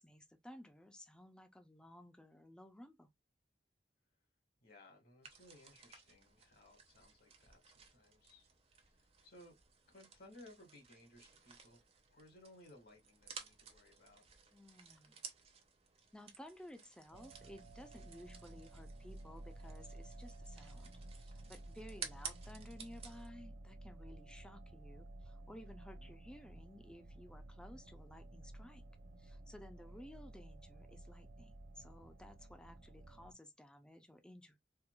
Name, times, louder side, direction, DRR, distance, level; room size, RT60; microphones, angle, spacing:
voice 1, 0.0-3.1 14.5-15.2 16.1-20.9 21.2-28.8 29.2-34.6, left 1 dB, 5° left, 0.5 m, -56 dB
voice 2, 4.6-8.5 8.9-9.5 9.9-11.8 12.1-14.3 25.9-26.1 29.8-30.0, left 1 dB, 60° left, 1.7 m, -61 dB
sound 1, 5.2-23.3, right 6 dB, 35° right, 0.7 m, -55 dB
sound 2, 17.1-33.3, right 1 dB, 70° right, 0.7 m, -54 dB
4.4 x 2.4 x 2.3 m
head